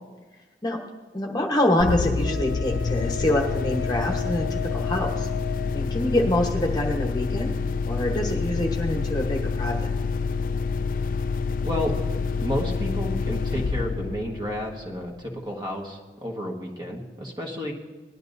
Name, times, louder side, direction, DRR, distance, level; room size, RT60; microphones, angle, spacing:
voice 1, 1.1-5.3 5.7-7.5 7.8-9.9, left 1 dB, 25° left, 2 dB, 1.1 m, -25 dB
sound 1, 1.8-15.3, left 4 dB, 50° left, 0.3 m, -27 dB
Wind instrument woodwind instrument, 2.2-5.9, left 11 dB, 80° left, 0.8 m, -36 dB
voice 2, 11.6-11.9 12.4-17.7, equal, 25° right, 0 dB, 1.5 m, -31 dB
19.0 x 11.5 x 2.7 m, 1.3 s
head